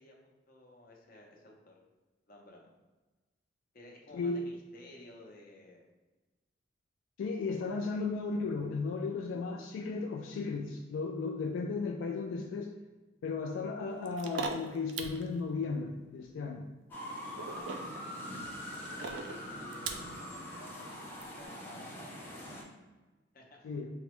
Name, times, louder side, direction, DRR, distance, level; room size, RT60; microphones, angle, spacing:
voice 1, 0.0-1.7 2.3-2.7 3.7-5.8 7.6-8.0 17.4-18.2 18.9-22.6 23.3-23.6, left 1 dB, 50° left, 0 dB, 0.6 m, -55 dB
voice 2, 4.1-4.4 7.2-12.7 13.2-16.7 23.6-23.9, left 4 dB, 80° left, 2 dB, 0.3 m, -35 dB
sound 1, 14.1-15.3 17.4-20.2 21.2-21.3, right 4 dB, 70° right, 0.3 m, -40 dB
sound 2, 16.9-22.6, equal, 10° left, 0.5 m, -43 dB
4.6 x 2.0 x 3.0 m, 1.2 s
head